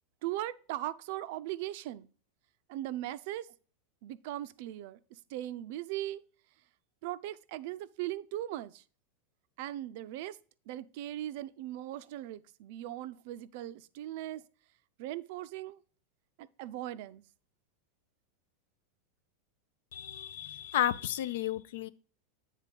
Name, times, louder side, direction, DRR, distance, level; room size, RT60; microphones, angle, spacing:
voice 1, 0.2-2.1 2.7-3.5 4.0-6.2 7.0-8.8 9.6-10.4 10.7-14.4 15.0-15.8 16.4-17.2, right 14 dB, 50° right, 0.4 m, -39 dB
voice 2, 19.9-21.9, left 12 dB, 70° left, 0.4 m, -32 dB
8.3 x 3.6 x 5.2 m
supercardioid pair, 170°, 0 cm